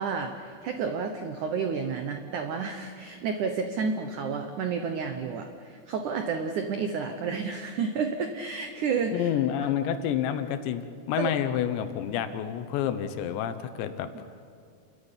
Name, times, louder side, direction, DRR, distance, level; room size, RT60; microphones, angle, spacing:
voice 1, 0.0-9.3 11.2-11.3, right 5 dB, 75° right, 6 dB, 1.8 m, -30 dB
voice 2, 9.1-10.8 11.1-14.3, left 10 dB, 80° left, 10 dB, 3.3 m, -29 dB
29.5 x 14.5 x 10.0 m, 2.4 s
omnidirectional pair, 5.1 m